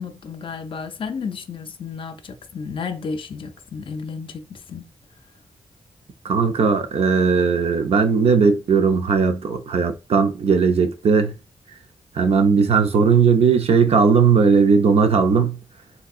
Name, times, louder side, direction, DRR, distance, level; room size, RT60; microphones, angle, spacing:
voice 1, 0.0-4.9, left 5 dB, 50° left, 0.4 m, -32 dB
voice 2, 6.2-11.4 12.1-15.6, right 5 dB, 65° right, 0.5 m, -17 dB
3.5 x 2.7 x 2.3 m
wide cardioid pair, 160°, 11 cm